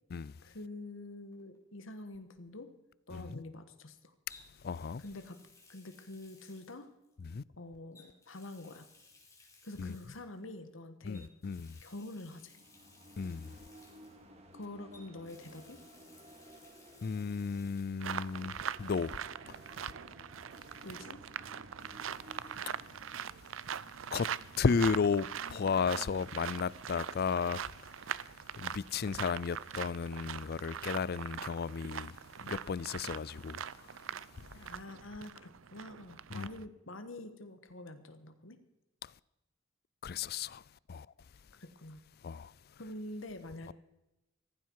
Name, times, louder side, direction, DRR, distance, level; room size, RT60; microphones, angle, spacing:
voice 1, 0.4-2.7 3.1-4.1 5.0-5.4 5.7-6.9 7.6-8.9 9.6-11.3 11.8-12.6 14.5-15.8 20.8-21.2 34.5-38.6 41.6-42.0 42.8-43.7, left 2 dB, 80° left, 1.4 m, -46 dB
Water tap faucet, 1.3-1.6 4.3-7.3 7.9-10.4 11.1-14.6 14.9-18.1 18.4-18.5 20.0-20.1, left 3 dB, 15° left, 3.5 m, -61 dB
voice 2, 3.1-3.4 4.6-5.0 7.2-7.4 9.8-10.0 11.0-11.8 13.2-13.5 17.0-19.1 19.5-19.6 22.7-22.8 24.1-24.3 24.6-28.1 28.6-33.6 36.3-36.5 39.0-39.1 40.0-40.6 40.9-41.1 42.2-42.5 43.7-43.8, left 5 dB, 50° left, 0.4 m, -34 dB
sound 1, 12.2-23.3, equal, 35° right, 2.3 m, -56 dB
sound 2, 18.0-36.6, right 8 dB, 85° right, 0.6 m, -42 dB
16.0 x 15.0 x 4.7 m
head